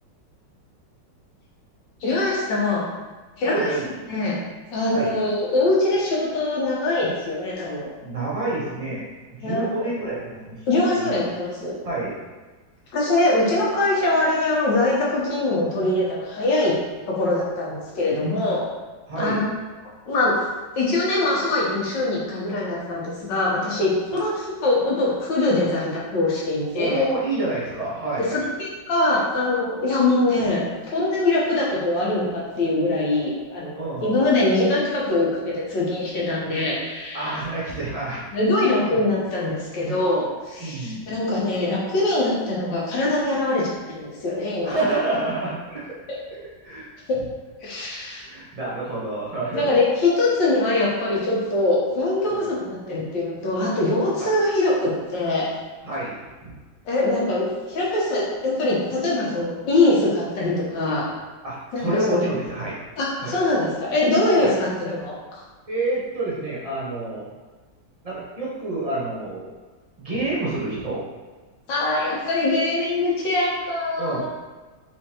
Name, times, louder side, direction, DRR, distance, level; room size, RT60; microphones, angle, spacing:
voice 1, 2.0-2.8 3.4-3.7 4.1-4.3 4.7-7.9 9.4-9.7 10.7-11.7 12.9-16.7 17.1-18.6 19.2-19.5 20.1-20.3 20.8-27.0 28.3-30.6 30.9-37.4 38.3-44.8 46.1-46.2 47.1-47.2 47.6-48.3 49.5-55.5 56.9-61.1 61.7-62.2 63.0-65.4 71.7-74.2, left 2 dB, 85° left, -5 dB, 1.7 m, -23 dB
voice 2, 3.4-3.9 4.9-5.2 8.0-10.6 11.0-11.1 11.8-12.2 19.1-19.4 26.7-28.4 33.8-34.2 37.1-38.3 38.9-39.0 40.6-41.1 44.6-46.0 46.6-46.9 48.3-49.7 52.3-52.4 55.8-56.5 61.4-62.8 63.2-63.3 64.4-64.5 65.7-67.3 68.0-69.5 70.0-71.0 74.0-74.2, right 2 dB, 30° right, -7 dB, 0.7 m, -28 dB
4.3 x 3.4 x 2.9 m, 1.3 s
omnidirectional pair, 1.9 m